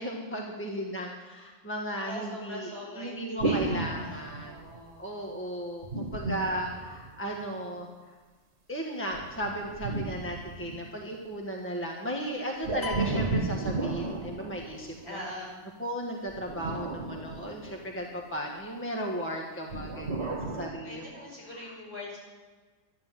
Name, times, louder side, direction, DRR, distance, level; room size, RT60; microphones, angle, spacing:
voice 1, 0.0-4.6 5.0-8.1 8.7-15.2 15.8-21.3 21.5-21.7, equal, 10° left, 0 dB, 1.6 m, -36 dB
voice 2, 2.0-5.1 15.0-15.6 20.8-22.2, left 1 dB, 60° left, -4 dB, 5.8 m, -42 dB
sound 1, 3.4-4.8 5.8-7.4 9.1-11.1 12.6-15.2 16.3-18.2 19.7-20.7, right 3 dB, 70° right, 1.9 m, -33 dB
sound 2, 12.8-14.5, left 3 dB, 35° left, 1.4 m, -42 dB
12.0 x 12.0 x 7.6 m, 1.4 s
omnidirectional pair, 1.2 m